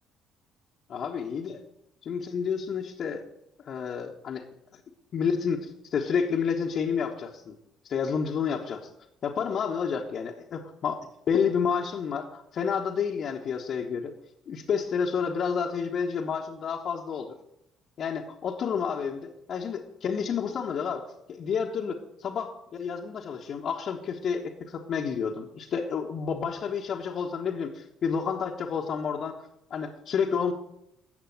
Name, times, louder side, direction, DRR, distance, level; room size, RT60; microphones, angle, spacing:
voice 1, 0.9-1.6 2.0-3.2 3.6-4.4 5.1-7.5 7.8-8.9 9.2-11.0 11.3-14.1 14.5-17.3 18.0-29.4 29.7-30.5, left 6 dB, 45° left, 0 dB, 1.2 m, -30 dB
13.5 x 8.1 x 7.8 m, 0.82 s
figure-of-eight pair, 50°, 0 cm